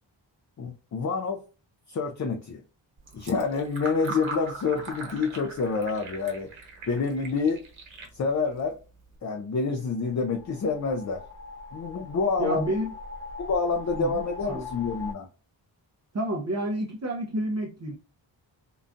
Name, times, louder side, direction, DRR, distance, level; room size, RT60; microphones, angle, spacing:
voice 1, 0.6-1.4 1.9-2.6 3.1-6.5 6.9-7.6 8.1-8.8 9.2-11.2 11.7-12.7 13.4-15.3, left 4 dB, 40° left, 0.4 m, -27 dB
Fill (with liquid), 3.0-9.2, right 2 dB, 90° right, 1.1 m, -41 dB
sound 1, 10.0-15.1, left 4 dB, 90° left, 1.6 m, -41 dB
voice 2, 12.4-12.9 14.0-14.7 16.1-18.0, right 1 dB, 35° right, 0.6 m, -30 dB
3.8 x 2.2 x 2.5 m
wide cardioid pair, 115°, 46 cm